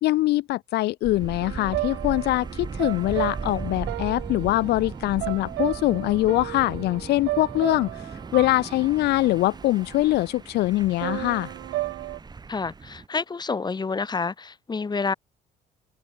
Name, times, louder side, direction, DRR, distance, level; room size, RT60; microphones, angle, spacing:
voice 1, 0.0-7.9 8.3-11.5, left 17 dB, 80° left, 2.1 m, -23 dB
sound 1, 1.0-13.1, right 4 dB, 25° right, 3.5 m, -38 dB
sound 2, 1.4-10.2 11.0-12.2, right 19 dB, 85° right, 1.9 m, -34 dB
voice 2, 12.5-15.1, left 4 dB, 25° left, 6.3 m, -28 dB
cardioid pair, 110°, 17 cm